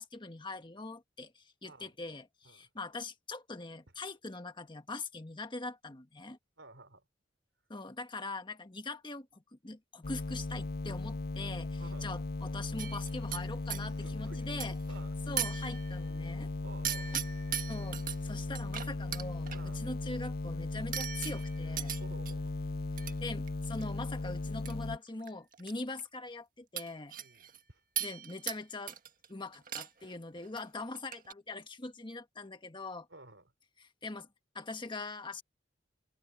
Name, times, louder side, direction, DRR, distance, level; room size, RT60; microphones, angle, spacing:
voice 1, 0.0-6.4 7.7-14.8 15.3-16.5 17.1-17.3 17.7-21.9 23.2-27.2 28.0-29.0 29.3-33.1 33.8-34.3 34.5-35.4, left 3 dB, 25° left, 1.5 m, -42 dB
voice 2, 6.6-7.1 11.8-12.1 13.8-15.2 16.6-17.2 19.5-19.9 22.0-22.6 27.2-27.8 33.1-33.5, right 2 dB, 85° right, 3.7 m, -53 dB
sound 1, 10.0-25.0, left 2 dB, 55° left, 0.7 m, -37 dB
sound 2, 12.8-13.8 14.6-14.9 15.4-16.1 16.8-18.2 18.5-19.6 20.9-22.3 23.0-23.1 23.5-23.8 24.6-24.7 25.1-25.7 26.0-26.1 26.8-27.6 28.0-28.6 28.9-29.3 29.5-30.1 30.4-30.6 30.9-31.3, right 9 dB, 50° right, 1.6 m, -38 dB
head